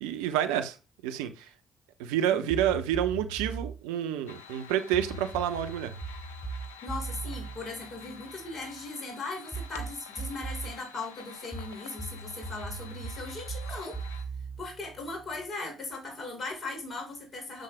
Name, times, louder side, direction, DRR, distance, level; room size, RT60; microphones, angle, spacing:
voice 1, 0.0-0.8 1.0-1.5 2.0-5.9, right 10 dB, 75° right, 0.9 m, -29 dB
sound 1, 2.5-3.8 4.9-8.6 9.5-10.8 11.5-15.4, right 4 dB, 15° left, 4.4 m, -39 dB
sound 2, 4.3-14.2, left 6 dB, 80° left, 1.0 m, -49 dB
voice 2, 6.8-14.0 14.6-17.6, left 3 dB, 35° left, 5.5 m, -38 dB
10.5 x 7.5 x 2.2 m
hypercardioid pair, 50°, 0 cm